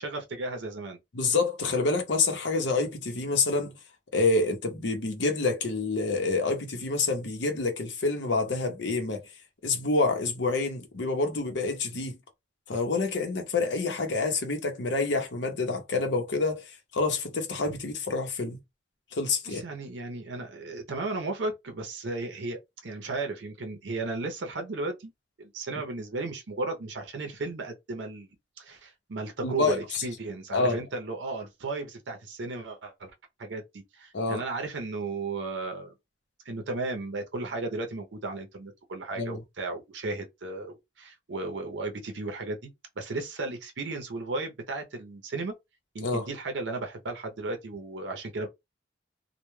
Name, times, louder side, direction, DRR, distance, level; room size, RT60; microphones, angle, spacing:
voice 1, 0.0-1.0 19.5-25.1 25.4-28.3 28.6-33.1 33.4-35.9 36.5-42.7 43.0-45.5 45.9-48.5, right 3 dB, 75° right, 0.6 m, -35 dB
voice 2, 1.1-3.7 4.1-9.2 9.6-12.2 12.7-18.6 19.1-19.6 29.4-30.0 30.5-30.8 34.1-34.4 39.2-39.4 46.0-46.3, left 3 dB, 75° left, 0.7 m, -27 dB
2.2 x 2.1 x 3.1 m
head